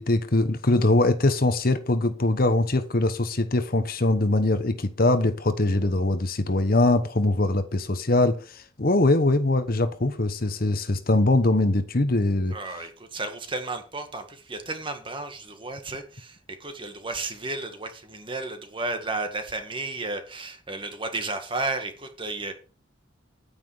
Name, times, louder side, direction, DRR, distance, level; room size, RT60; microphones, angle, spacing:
voice 1, 0.0-12.5, left 2 dB, 45° left, 1.1 m, -22 dB
voice 2, 12.5-22.5, right 2 dB, 25° right, 1.8 m, -33 dB
10.0 x 9.5 x 5.0 m
head